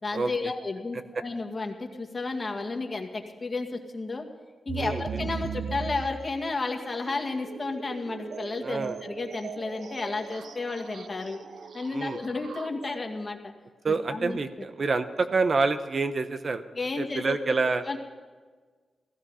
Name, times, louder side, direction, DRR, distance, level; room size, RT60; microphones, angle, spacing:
voice 1, 0.0-4.3 4.7-11.4 11.7-13.5 13.9-14.4 16.7-17.4 17.8-18.0, left 3 dB, 35° left, 3 dB, 2.0 m, -32 dB
sound 1, 4.7-13.2, right 6 dB, 75° right, 0.5 m, -39 dB
voice 2, 8.6-9.0 11.9-12.2 13.8-16.6 17.0-17.8, right 4 dB, 50° right, 10 dB, 0.9 m, -27 dB
17.0 x 15.0 x 5.6 m, 1.5 s
cardioid pair, 80°, 0 cm